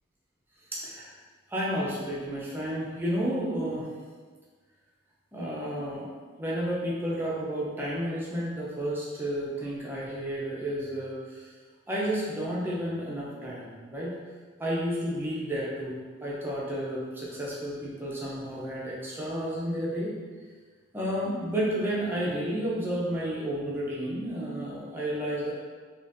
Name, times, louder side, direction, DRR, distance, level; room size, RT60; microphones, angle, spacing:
voice 1, 0.7-1.1 1.5-3.9 5.3-6.1 6.4-11.5 11.9-14.1 14.6-20.1 20.9-25.5, equal, 10° right, -7 dB, 0.6 m, -31 dB
3.5 x 2.5 x 2.6 m, 1.5 s
head